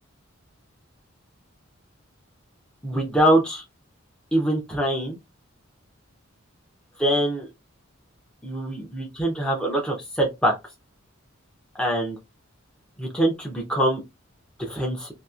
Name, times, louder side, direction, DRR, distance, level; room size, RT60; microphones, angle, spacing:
voice 1, 2.8-3.6 4.3-5.2 7.0-7.5 8.4-10.5 11.8-12.2 13.0-14.0 14.6-15.1, right 1 dB, 5° left, 0 dB, 0.6 m, -23 dB
2.8 x 2.8 x 2.3 m, 0.21 s
head